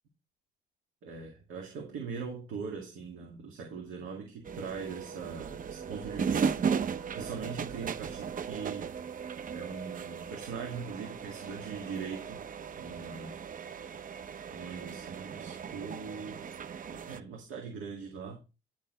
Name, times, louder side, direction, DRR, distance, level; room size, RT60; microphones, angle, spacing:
voice 1, 1.0-8.9 9.5-12.4 12.8-13.3 14.5-16.5 16.9-18.4, right 5 dB, 85° right, 2.1 m, -41 dB
sound 1, 4.4-17.2, right 6 dB, 45° right, 0.6 m, -36 dB
10.0 x 4.4 x 3.8 m
cardioid pair, 90°, 20 cm